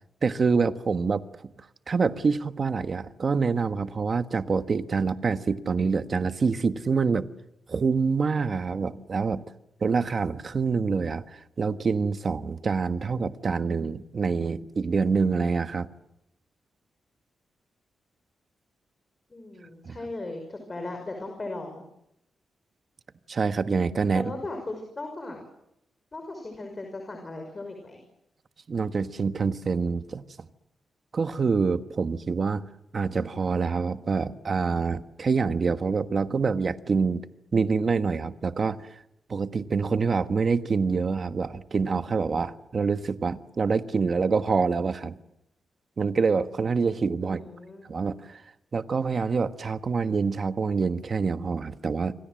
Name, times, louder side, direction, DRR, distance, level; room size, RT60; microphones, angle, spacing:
voice 1, 0.2-1.5 1.9-7.3 7.7-9.4 9.8-15.9 19.8-20.0 23.3-24.3 28.7-30.5 31.1-32.6 32.9-37.2 37.5-38.8 39.3-45.2 46.0-47.4 47.9-48.4 48.7-52.1, right 5 dB, 45° right, 1.4 m, -26 dB
voice 2, 19.3-21.8 24.1-25.4 26.1-28.0 47.2-47.8, left 2 dB, 30° left, 5.8 m, -37 dB
28.5 x 25.0 x 7.7 m
cardioid pair, 100°, 0 cm